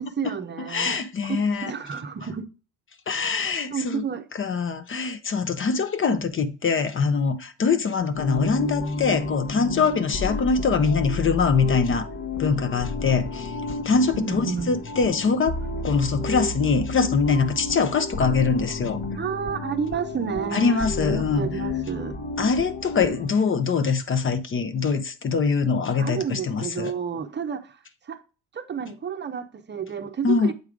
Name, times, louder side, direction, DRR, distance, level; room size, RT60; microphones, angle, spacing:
voice 1, 0.0-2.4 3.7-4.2 14.1-14.8 19.1-22.1 26.0-27.8 28.1-28.2 28.5-30.5, right 6 dB, 30° right, 0.8 m, -31 dB
voice 2, 0.7-1.7 3.1-4.0 4.4-12.1 12.4-19.0 20.5-21.5 22.4-26.9 30.2-30.5, left 5 dB, 35° left, 0.8 m, -23 dB
sound 1, 8.1-23.3, left 2 dB, 55° left, 1.4 m, -31 dB
8.0 x 3.6 x 4.8 m
hypercardioid pair, 65°, 36 cm